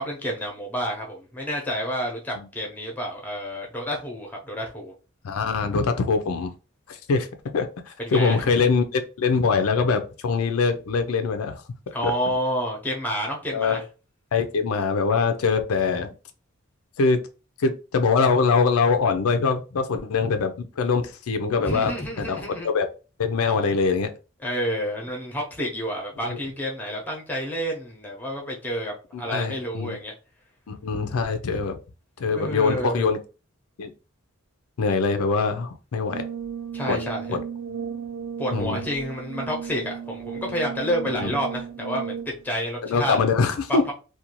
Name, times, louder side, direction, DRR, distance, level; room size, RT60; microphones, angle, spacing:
voice 1, 0.0-4.9 8.0-8.5 11.9-13.8 21.6-22.7 24.4-30.1 32.3-33.1 36.7-37.4 38.4-42.2 42.4-43.2 43.7-43.8, equal, 10° left, 0.7 m, -29 dB
voice 2, 5.2-6.5 6.9-7.3 7.5-11.6 12.0-12.1 13.5-13.8 14.3-16.1 17.0-17.2 17.6-21.9 22.2-22.9 23.2-24.1 29.1-30.0 30.7-31.8 32.2-33.2 33.8-33.9 34.8-36.2 36.9-37.0 37.3-37.4 38.5-38.8 41.2-41.3 42.8-43.9, left 4 dB, 80° left, 0.4 m, -23 dB
Brass instrument, 36.1-42.5, right 7 dB, 85° right, 1.1 m, -34 dB
2.5 x 2.2 x 2.9 m
head